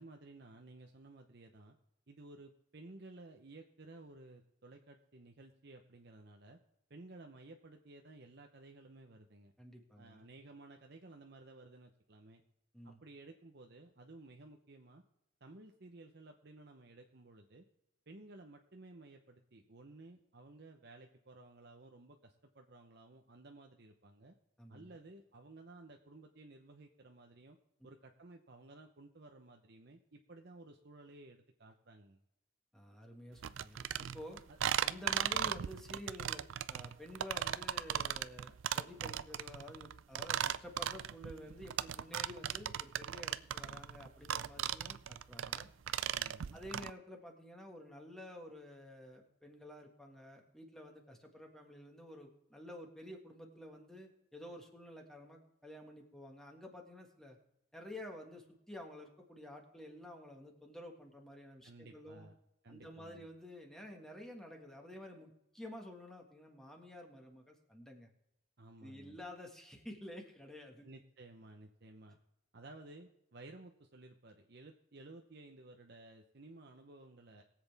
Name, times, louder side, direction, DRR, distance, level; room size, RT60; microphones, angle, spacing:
voice 1, 0.0-1.8 2.1-6.6 6.9-9.5 10.0-12.4 12.8-15.0 15.4-17.6 18.1-24.3 24.7-27.6 27.8-32.2 34.5-34.6 35.3-35.4 46.1-46.6 61.6-62.3 62.6-63.3 68.6-69.2 70.8-72.2 72.5-77.4, right 2 dB, 55° right, 3 dB, 0.8 m, -55 dB
voice 2, 9.6-10.3 12.7-13.0 24.6-24.9 32.7-34.4 34.8-45.7 46.5-57.4 57.7-62.3 62.7-68.1 68.8-70.9, left 1 dB, 5° left, 1 dB, 1.6 m, -51 dB
sound 1, 33.4-46.9, right 10 dB, 80° right, 0.4 m, -37 dB
22.0 x 7.8 x 3.5 m, 0.84 s
head